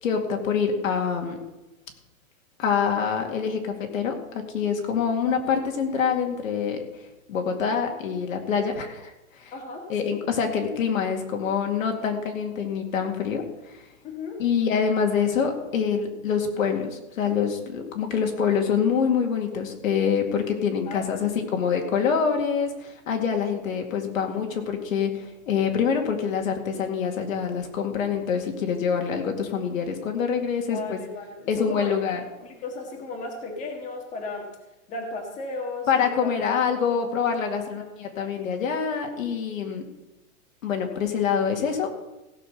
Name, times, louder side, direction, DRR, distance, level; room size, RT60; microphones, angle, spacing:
voice 1, 0.0-1.4 2.6-6.8 7.3-9.5 9.9-13.8 14.4-31.0 31.5-32.2 35.9-39.8 40.6-41.9, left 6 dB, 70° left, 3 dB, 2.3 m, -25 dB
voice 2, 9.5-10.2 14.0-14.4 20.9-21.3 30.7-31.9 32.4-34.5 34.9-36.3 36.8-37.0 37.6-37.7, left 3 dB, 15° left, 1 dB, 1.6 m, -35 dB
16.0 x 6.0 x 6.7 m, 1.0 s
hypercardioid pair, 160°, 42 cm